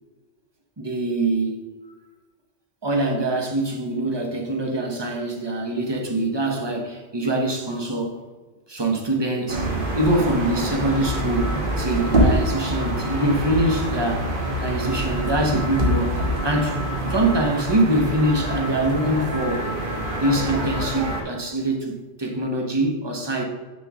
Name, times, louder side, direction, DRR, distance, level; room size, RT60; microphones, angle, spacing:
voice 1, 0.8-1.7 2.8-8.2 8.7-9.7 9.9-14.3 14.6-16.8 17.1-19.7 20.1-23.4, right 1 dB, 25° right, 2 dB, 0.9 m, -24 dB
sound 1, 9.5-21.2, right 1 dB, 50° right, 1.3 m, -25 dB
6.4 x 4.2 x 6.1 m, 1.3 s
omnidirectional pair, 1.2 m